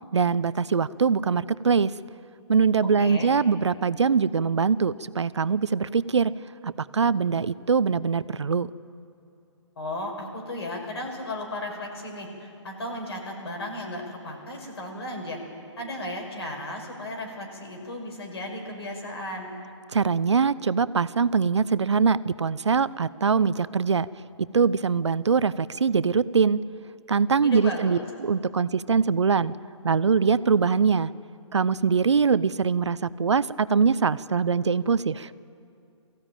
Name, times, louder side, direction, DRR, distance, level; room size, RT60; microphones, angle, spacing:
voice 1, 0.1-1.9 2.5-6.3 6.6-8.7 19.9-24.1 24.5-26.6 27.1-29.5 29.8-31.1 31.5-35.3, right 5 dB, 65° right, 17 dB, 0.7 m, -23 dB
voice 2, 3.0-3.3 9.8-15.4 15.8-19.6 27.4-28.0, left 1 dB, 55° left, 1 dB, 6.1 m, -35 dB
22.5 x 15.0 x 9.1 m, 2.5 s
figure-of-eight pair, 135°, 16 cm